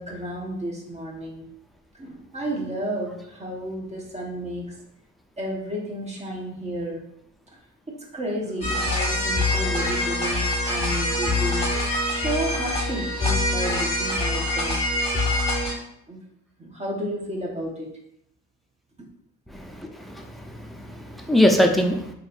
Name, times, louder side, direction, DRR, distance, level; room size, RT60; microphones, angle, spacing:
voice 1, 0.0-1.4 2.0-4.7 5.4-7.0 7.9-11.7 12.2-14.8 16.1-16.2 16.6-17.9 19.0-19.1, right 1 dB, 20° right, -1 dB, 1.0 m, -32 dB
sound 1, 8.6-15.8, left 2 dB, 20° left, 1.2 m, -24 dB
voice 2, 19.5-20.3 20.6-22.1, left 1 dB, ahead, 2 dB, 0.5 m, -22 dB
3.9 x 3.0 x 2.5 m, 0.75 s
cardioid pair, 90°, 30 cm